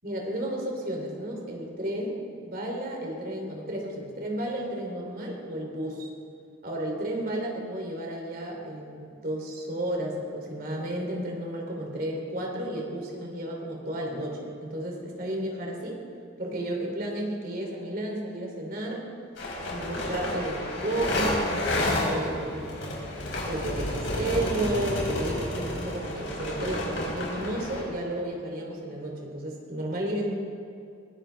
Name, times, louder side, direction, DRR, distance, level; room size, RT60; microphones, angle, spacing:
voice 1, 0.0-2.2 2.4-6.1 6.6-16.0 16.4-19.1 19.7-22.7 23.4-30.3, right 1 dB, 45° right, 0 dB, 3.0 m, -32 dB
sound 1, 19.4-27.8, left 1 dB, 70° left, 4.5 m, -30 dB
22.5 x 16.5 x 3.4 m, 2.5 s
head